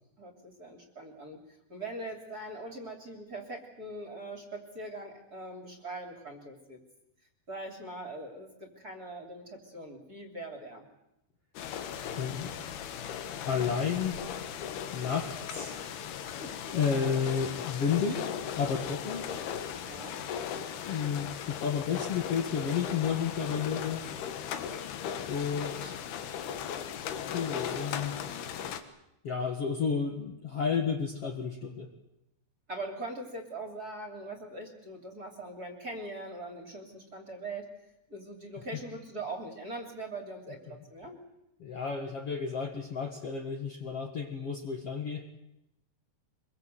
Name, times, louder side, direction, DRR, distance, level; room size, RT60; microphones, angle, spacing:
voice 1, 0.2-1.4 1.7-6.8 7.5-10.8 16.3-16.5 19.8-20.2 32.7-37.7 38.1-41.2, right 2 dB, 25° right, 4 dB, 3.1 m, -41 dB
sound 1, 11.6-28.8, left 8 dB, 80° left, 3.4 m, -37 dB
voice 2, 12.1-12.5 13.5-14.2 14.9-15.8 16.6-18.3 18.6-19.3 20.9-24.1 25.3-26.0 27.3-28.2 29.2-31.9 40.7-40.8 41.6-45.3, left 6 dB, 45° left, 3 dB, 2.2 m, -32 dB
25.0 x 23.0 x 8.0 m, 0.85 s
omnidirectional pair, 4.5 m